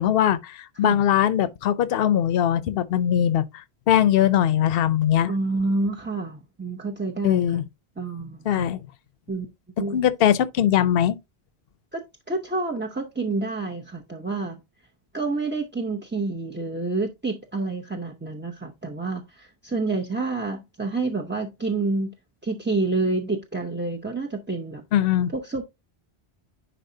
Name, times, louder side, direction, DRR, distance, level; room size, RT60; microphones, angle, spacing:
voice 1, 0.0-5.3 7.2-7.6 8.5-8.8 9.9-11.2 24.9-25.3, left 10 dB, 70° left, 0.8 m, -21 dB
voice 2, 5.3-7.6 8.0-8.7 9.3-9.5 9.8-10.0 11.9-12.0 12.3-14.6 15.1-22.1 22.4-24.8 25.3-25.6, right 3 dB, 15° right, 0.6 m, -28 dB
10.0 x 4.1 x 2.7 m
omnidirectional pair, 1.1 m